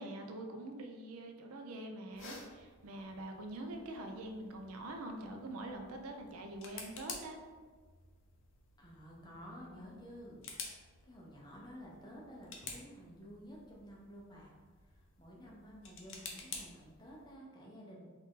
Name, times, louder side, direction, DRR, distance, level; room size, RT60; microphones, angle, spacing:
voice 1, 0.0-7.4, right 1 dB, 85° right, 4 dB, 0.5 m, -45 dB
sound 1, 2.1-17.4, left 4 dB, 55° left, 0.6 m, -52 dB
voice 2, 8.8-10.8 11.0-14.5 14.8-18.1, equal, 20° left, -4 dB, 0.7 m, -52 dB
4.0 x 2.5 x 3.7 m, 1.4 s
head